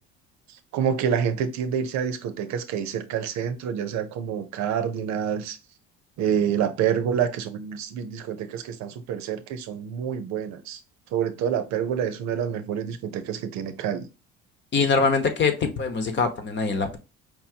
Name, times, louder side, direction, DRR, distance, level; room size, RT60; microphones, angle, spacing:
voice 1, 0.5-5.6 6.2-10.8 11.1-14.1, right 8 dB, 65° right, 0.7 m, -27 dB
voice 2, 14.7-17.0, left 4 dB, 40° left, 1.0 m, -23 dB
4.9 x 2.8 x 2.8 m
supercardioid pair, 95°, 30 cm